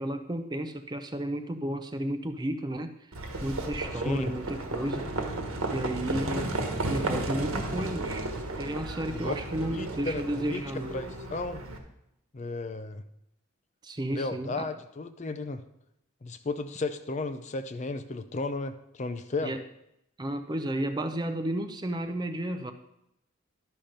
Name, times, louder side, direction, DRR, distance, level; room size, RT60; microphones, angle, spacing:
voice 1, 0.0-3.1 3.4-5.1 5.7-6.6 6.9-8.3 8.5-11.0 13.8-14.7 19.4-19.6 20.2-22.7, right 1 dB, 20° right, 8 dB, 0.5 m, -32 dB
Livestock farm animals working animals, 3.1-11.8, right 2 dB, 80° right, 1.4 m, -33 dB
voice 2, 3.9-4.3 6.4-6.5 9.1-9.3 9.6-10.6 10.9-11.6 12.3-13.0 14.1-15.6 16.2-19.5, left 3 dB, 30° left, 9 dB, 0.4 m, -34 dB
12.0 x 5.7 x 5.1 m, 0.83 s
head